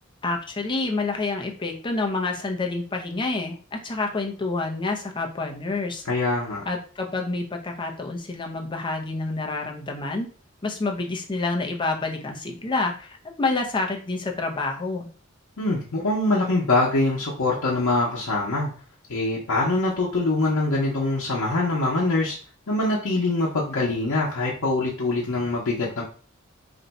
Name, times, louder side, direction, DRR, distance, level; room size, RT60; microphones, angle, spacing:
voice 1, 0.2-6.0 6.7-10.3 10.6-15.1, left 3 dB, 25° left, 2 dB, 0.5 m, -28 dB
voice 2, 6.0-6.6 15.6-18.7 19.1-22.4 22.7-26.0, left 2 dB, 85° left, -5 dB, 0.7 m, -24 dB
2.6 x 2.2 x 3.9 m, 0.40 s
head